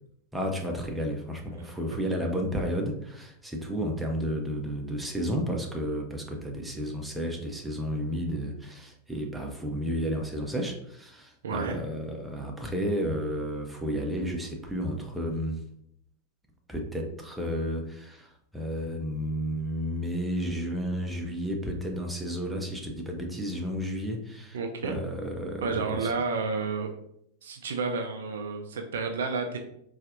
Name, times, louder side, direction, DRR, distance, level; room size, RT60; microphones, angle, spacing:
voice 1, 0.3-15.6 16.7-26.1, equal, 5° right, 1 dB, 0.6 m, -32 dB
voice 2, 11.4-11.8 24.5-25.0 25.6-26.9 27.4-29.6, right 4 dB, 60° right, 4 dB, 0.4 m, -30 dB
3.9 x 2.4 x 2.5 m, 0.72 s
figure-of-eight pair, 90°, 0 cm